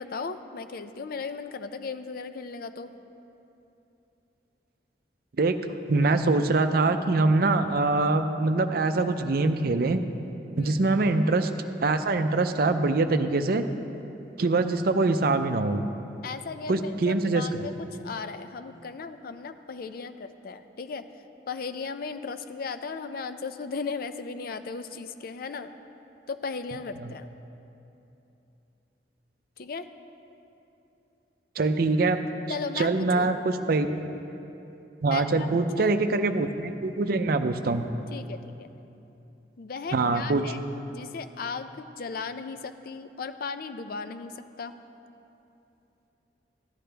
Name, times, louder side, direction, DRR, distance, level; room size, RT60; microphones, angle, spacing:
voice 1, 0.0-2.9 10.6-10.9 16.2-21.1 21.5-25.7 26.3-27.3 29.6-29.9 32.5-33.3 35.1-35.5 35.8-35.9 38.1-38.7 39.6-40.6 40.9-44.7, left 4 dB, 55° left, 10 dB, 0.5 m, -36 dB
voice 2, 5.9-10.0 10.6-11.5 11.8-13.6 14.4-15.9 16.7-17.4 27.0-27.1 31.6-32.2 32.8-33.9 35.0-37.9 39.9-40.4, right 3 dB, 55° right, 8 dB, 0.5 m, -24 dB
13.5 x 10.5 x 3.4 m, 2.9 s
head